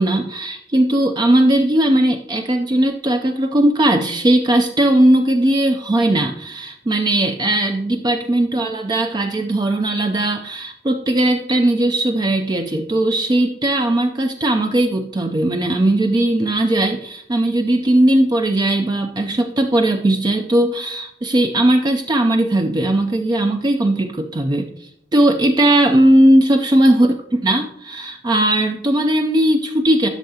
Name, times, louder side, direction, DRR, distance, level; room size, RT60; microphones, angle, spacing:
voice 1, 0.0-27.1 27.4-30.1, right 1 dB, 25° right, 4 dB, 0.4 m, -18 dB
11.5 x 6.5 x 2.8 m, 0.74 s
head